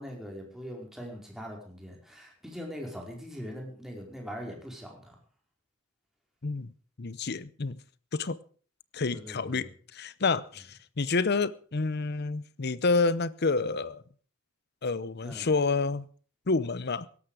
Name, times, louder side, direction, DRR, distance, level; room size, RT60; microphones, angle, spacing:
voice 1, 0.0-5.1 9.1-9.7 15.2-15.5, equal, ahead, 4.8 m, -41 dB
voice 2, 6.4-6.7 7.0-7.8 8.1-8.4 8.9-14.0 14.8-16.1 16.5-17.1, left 4 dB, 50° left, 0.8 m, -29 dB
17.0 x 13.0 x 4.9 m
head